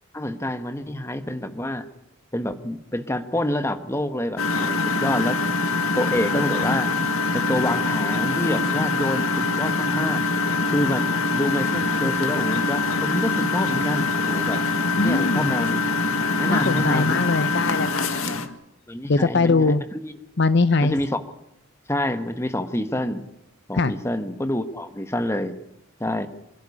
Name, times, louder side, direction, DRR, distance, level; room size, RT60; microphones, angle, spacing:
voice 1, 0.1-1.9 2.3-5.4 5.9-7.0 7.3-10.2 10.7-14.6 15.0-15.8 16.4-17.2 18.3-18.4 18.9-19.8 20.0-20.1 20.8-21.2 21.9-23.2 23.7-25.6 26.0-26.3, left 1 dB, 15° left, 9 dB, 1.2 m, -27 dB
Engine, 4.4-18.5, left 3 dB, 85° left, 1.8 m, -24 dB
voice 2, 15.0-15.6 16.5-18.6 19.1-19.8 20.4-20.9 23.7-23.9, left 3 dB, 55° left, 14 dB, 0.8 m, -21 dB
26.5 x 11.5 x 9.9 m, 0.85 s
head